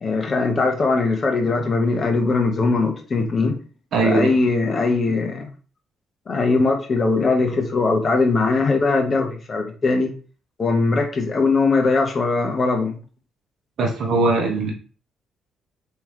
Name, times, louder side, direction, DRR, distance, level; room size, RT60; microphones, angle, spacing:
voice 1, 0.0-3.6 4.0-5.5 6.3-10.1 10.6-13.0, left 3 dB, 45° left, 3 dB, 1.2 m, -20 dB
voice 2, 3.9-4.3 13.8-14.7, right 3 dB, 65° right, 1 dB, 1.0 m, -20 dB
3.5 x 3.3 x 3.1 m, 0.38 s
supercardioid pair, 70°, 0 cm